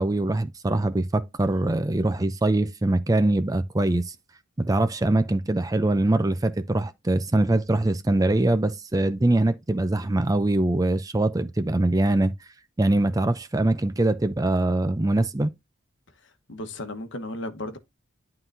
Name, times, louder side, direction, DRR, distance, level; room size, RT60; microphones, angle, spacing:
voice 1, 0.0-4.1 4.6-12.3 12.8-15.5, right 2 dB, 15° right, 0.4 m, -23 dB
voice 2, 16.2-17.8, left 1 dB, 60° left, 1.1 m, -35 dB
11.0 x 3.9 x 2.6 m
head